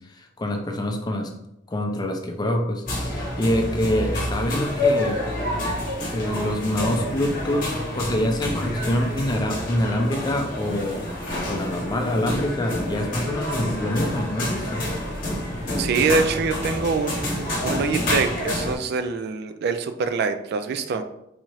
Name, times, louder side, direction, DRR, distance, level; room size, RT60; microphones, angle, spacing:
voice 1, 0.0-1.3 1.7-5.2 6.0-7.7 7.9-11.1 11.4-14.8, left 1 dB, 20° left, 3 dB, 0.4 m, -26 dB
sound 1, 2.9-18.8, left 1 dB, 45° left, 0.9 m, -28 dB
voice 2, 15.8-21.0, right 5 dB, 55° right, 8 dB, 0.3 m, -25 dB
4.1 x 2.4 x 3.0 m, 0.80 s
head